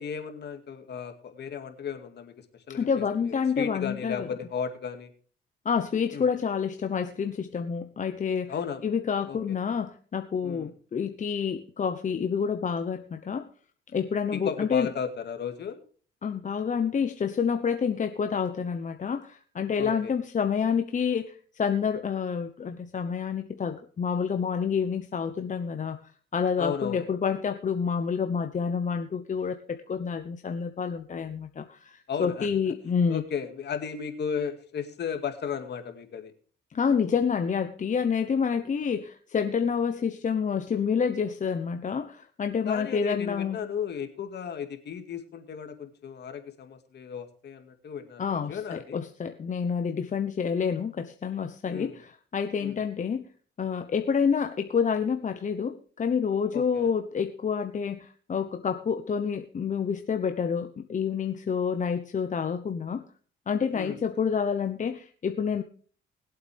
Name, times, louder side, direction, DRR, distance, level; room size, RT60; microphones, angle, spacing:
voice 1, 0.0-5.1 6.1-6.3 8.5-8.8 9.3-9.6 10.4-10.7 14.3-15.8 19.8-20.1 26.6-27.1 32.1-32.5 33.1-36.3 42.7-49.0 51.7-52.0 52.6-52.8 56.5-56.9 63.7-64.0, left 7 dB, 60° left, 7 dB, 2.2 m, -35 dB
voice 2, 2.7-4.3 5.6-8.5 8.8-13.5 13.9-14.9 16.2-26.0 26.3-33.2 36.7-43.6 48.2-53.3 53.6-63.0 63.5-65.6, left 6 dB, 40° left, 8 dB, 0.9 m, -28 dB
20.5 x 8.1 x 3.5 m, 0.43 s
cardioid pair, 90°, 20 cm